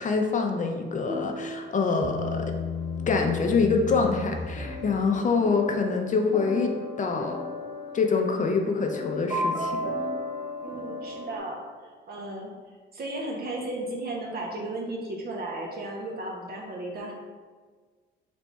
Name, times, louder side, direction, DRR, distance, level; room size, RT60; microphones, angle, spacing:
voice 1, 0.0-2.5 3.1-6.7 7.0-7.4 7.9-9.8, left 4 dB, 40° left, 3 dB, 0.5 m, -25 dB
sound 1, 0.9-11.4, left 1 dB, 20° right, 1.2 m, -36 dB
Bass guitar, 2.0-5.4, left 5 dB, 70° left, 0.9 m, -34 dB
voice 2, 10.6-11.7 12.1-12.5 12.9-17.1, right 1 dB, 50° right, 0 dB, 1.0 m, -34 dB
3.4 x 3.3 x 4.1 m, 1.5 s
cardioid pair, 90°, 20 cm